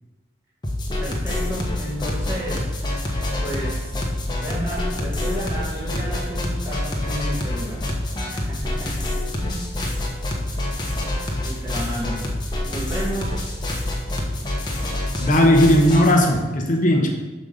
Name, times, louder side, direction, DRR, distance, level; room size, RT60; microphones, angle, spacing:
sound 1, 0.6-16.1, left 1 dB, 25° left, 1.0 m, -26 dB
voice 1, 1.0-2.7 3.4-4.1 4.4-7.9 8.2-9.7 11.4-12.3 12.7-13.4 16.9-17.1, equal, 15° right, -6 dB, 1.3 m, -32 dB
voice 2, 15.2-17.1, left 1 dB, 45° left, 1 dB, 0.9 m, -16 dB
5.3 x 5.1 x 6.4 m, 1.2 s
head